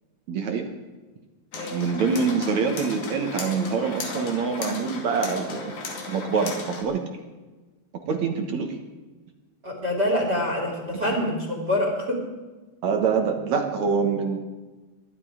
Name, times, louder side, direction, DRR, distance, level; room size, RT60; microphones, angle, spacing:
voice 1, 0.3-0.7 1.7-5.7 6.1-7.0 8.1-8.8 12.8-14.4, right 5 dB, 65° right, 4 dB, 2.4 m, -25 dB
sound 1, 1.5-6.8, left 3 dB, 65° left, 3.8 m, -35 dB
voice 2, 1.5-1.9 9.6-12.2, left 1 dB, 30° right, 2 dB, 3.0 m, -26 dB
22.5 x 12.0 x 5.0 m, 1.2 s
omnidirectional pair, 3.8 m